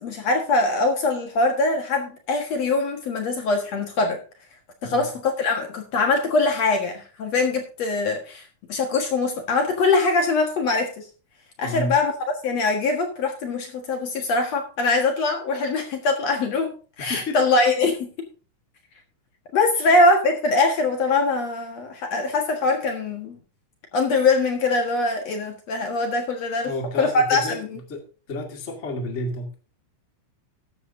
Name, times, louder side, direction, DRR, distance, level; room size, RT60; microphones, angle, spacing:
voice 1, 0.0-4.2 4.8-8.4 8.7-11.1 11.6-12.1 12.4-18.3 19.5-23.4 23.9-26.7 27.0-27.7, left 3 dB, 55° left, 3 dB, 2.6 m, -22 dB
voice 2, 4.8-5.1 11.6-11.9 17.0-17.4 19.8-19.9 26.6-27.6 27.9-29.5, left 1 dB, 25° left, 2 dB, 2.0 m, -31 dB
13.5 x 11.0 x 2.7 m, 0.35 s
omnidirectional pair, 3.8 m